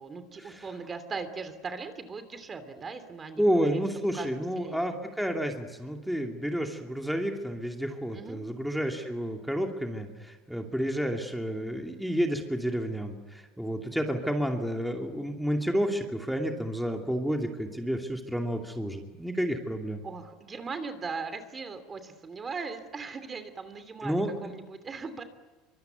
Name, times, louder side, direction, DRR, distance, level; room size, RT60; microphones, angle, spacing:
voice 1, 0.0-3.8 4.1-4.9 8.1-8.4 20.0-25.2, right 4 dB, 25° right, 10 dB, 2.9 m, -39 dB
voice 2, 3.4-20.0 24.0-24.3, equal, ahead, 2 dB, 2.6 m, -30 dB
24.5 x 24.0 x 9.3 m, 1.3 s
supercardioid pair, 125°, 0 cm